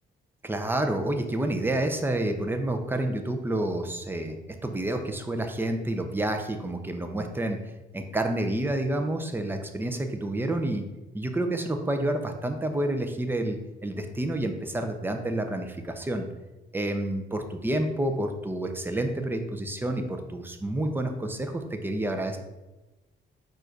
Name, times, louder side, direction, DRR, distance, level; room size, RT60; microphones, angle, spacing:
voice 1, 0.4-7.6 7.9-10.9 11.1-16.3 16.7-22.4, right 1 dB, 10° right, 6 dB, 0.6 m, -29 dB
4.5 x 2.5 x 4.6 m, 1.1 s
cardioid pair, 90°, 20 cm